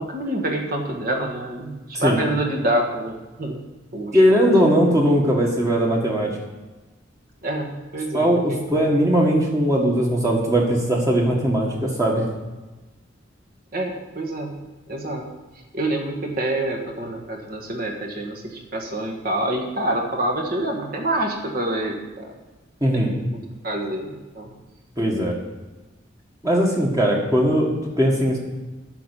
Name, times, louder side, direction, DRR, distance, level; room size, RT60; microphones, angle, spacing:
voice 1, 0.0-3.7 3.9-4.4 7.4-8.9 13.7-14.5 14.9-15.3 15.7-22.4 22.9-24.5, right 1 dB, 50° right, 1 dB, 1.8 m, -27 dB
voice 2, 4.1-6.4 8.1-12.3 22.8-23.1 25.0-25.3 26.4-27.7 28.0-28.4, equal, 15° right, -2 dB, 1.7 m, -19 dB
9.9 x 5.9 x 8.3 m, 1.2 s
head